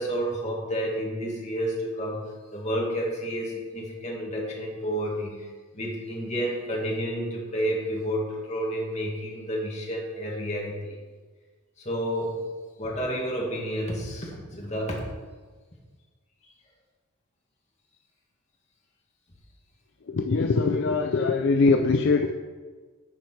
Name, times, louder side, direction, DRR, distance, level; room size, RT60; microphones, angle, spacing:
voice 1, 0.0-2.2 2.5-5.5 5.7-11.0 11.8-12.4 12.8-15.0, equal, 35° left, -3 dB, 1.8 m, -30 dB
voice 2, 20.1-22.3, left 4 dB, 60° left, 5 dB, 0.4 m, -22 dB
10.0 x 4.6 x 4.5 m, 1.4 s
head